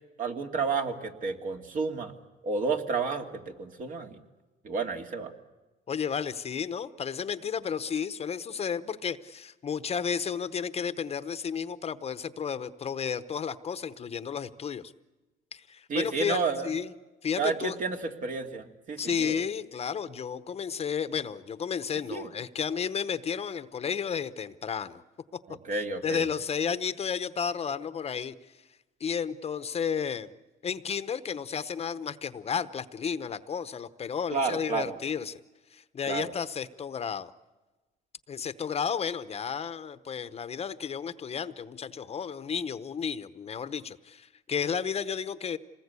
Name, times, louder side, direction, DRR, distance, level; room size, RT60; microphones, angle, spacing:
voice 1, 0.2-2.1 2.4-4.2 4.6-5.3 15.9-16.7 17.4-19.4 22.1-22.3 25.5-26.2 34.3-34.9 36.0-36.3, right 4 dB, 50° right, 4 dB, 2.4 m, -31 dB
voice 2, 5.9-14.9 15.5-16.9 17.2-17.8 19.0-25.0 25.7-28.3 29.0-30.3 30.6-35.4 35.7-37.3 38.3-45.6, left 7 dB, 35° left, 13 dB, 0.9 m, -32 dB
26.5 x 20.0 x 8.3 m, 1.2 s
cardioid pair, 110°, 17 cm